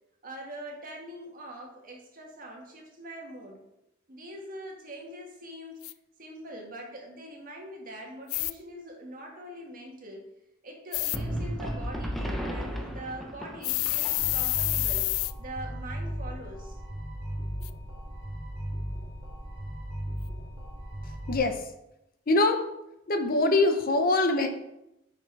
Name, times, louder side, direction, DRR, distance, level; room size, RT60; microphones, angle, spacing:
voice 1, 0.2-3.6 4.1-5.8 6.2-10.2 10.6-15.1 15.4-16.8, right 1 dB, 45° right, 0 dB, 1.5 m, -43 dB
sound 1, 5.8-5.9 8.3-8.5 10.9-11.2 13.6-15.3 17.6-17.7, left 19 dB, 85° left, 0.3 m, -28 dB
sound 2, 11.1-14.7, equal, ahead, 0.8 m, -34 dB
sound 3, 14.2-21.4, equal, 30° right, 2.2 m, -37 dB
voice 2, 21.3-21.6 22.3-22.6 23.1-24.5, left 2 dB, 45° left, 6 dB, 0.7 m, -23 dB
5.9 x 5.6 x 4.6 m, 0.87 s
head